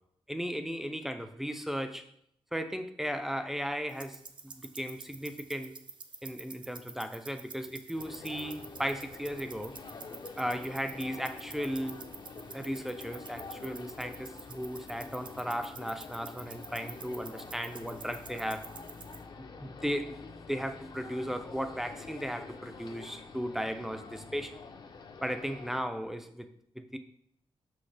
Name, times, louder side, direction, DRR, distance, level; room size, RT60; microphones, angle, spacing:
voice 1, 0.3-2.1 2.5-5.8 6.2-9.7 10.4-12.1 12.5-18.7 19.4-20.2 20.5-24.6 25.2-26.5 26.8-27.0, equal, 5° right, 8 dB, 0.4 m, -36 dB
sound 1, 3.9-19.2, right 5 dB, 50° right, 0.6 m, -49 dB
sound 2, 8.0-25.8, left 4 dB, 45° left, 0.6 m, -47 dB
6.2 x 5.8 x 3.3 m, 0.70 s
wide cardioid pair, 140°, 10 cm